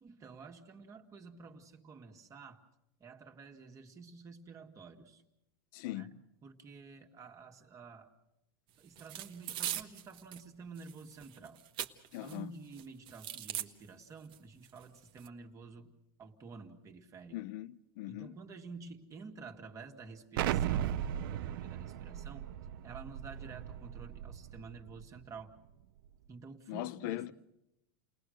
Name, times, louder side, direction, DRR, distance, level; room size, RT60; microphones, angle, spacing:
voice 1, 0.0-2.6 3.0-5.2 5.9-6.2 6.4-8.1 8.8-11.6 12.2-15.9 16.2-17.4 18.1-22.4 22.8-25.5 26.3-27.3, right 4 dB, 25° right, 2.0 m, -50 dB
voice 2, 5.7-6.1 12.1-12.5 17.3-18.4 26.7-27.3, left 16 dB, 60° left, 0.9 m, -40 dB
sound 1, 9.0-10.4 10.8-12.4 12.7-13.7 14.3-14.4 14.6-15.3, right 12 dB, 45° right, 1.4 m, -41 dB
Explosion, 20.4-25.1, right 11 dB, 70° right, 0.7 m, -37 dB
29.5 x 19.5 x 6.6 m
supercardioid pair, 125°, 12 cm